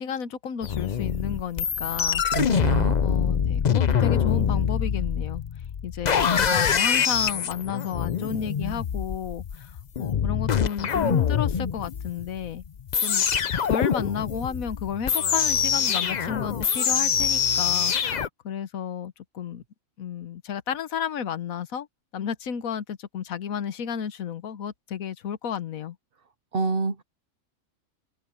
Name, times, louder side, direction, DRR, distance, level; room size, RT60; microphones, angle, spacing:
voice 1, 0.0-2.2 3.0-5.4 5.8-9.7 10.0-12.6 13.0-13.3 13.6-19.6 20.0-21.9 22.1-26.0, left 8 dB, 85° left, 1.4 m, -32 dB
sound 1, 0.6-18.3, left 7 dB, 45° left, 0.6 m, -25 dB
voice 2, 2.2-3.0 26.5-27.0, right 5 dB, 50° right, 0.9 m, -27 dB
omnidirectional pair, 1.4 m